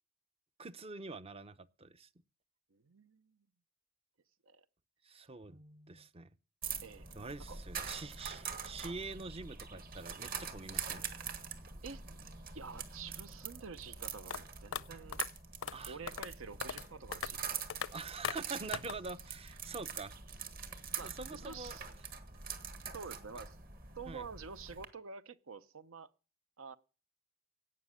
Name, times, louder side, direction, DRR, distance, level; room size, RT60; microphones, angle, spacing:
voice 1, 0.6-2.1 5.0-6.3 7.2-11.0 15.7-16.0 17.9-20.1 21.0-21.8 24.1-24.2, right 4 dB, 30° right, 0.6 m, -45 dB
voice 2, 2.7-3.4 4.5-4.7 5.2-5.3 6.8-7.1 7.5-7.6 11.8-12.0 12.5-15.2 15.9-18.0 21.0-21.9 22.9-23.6 23.9-26.1 26.6-26.8, right 5 dB, 75° right, 0.8 m, -48 dB
sound 1, 6.6-24.8, right 6 dB, 45° right, 1.7 m, -44 dB
sound 2, 14.3-14.4 14.7-14.8 15.1-15.3 15.6-15.8 16.1-16.3 16.6-16.9 17.1-17.3 17.7-17.9 18.2-18.4 18.7-19.0, left 8 dB, 75° left, 0.6 m, -38 dB
17.0 x 6.1 x 9.9 m
head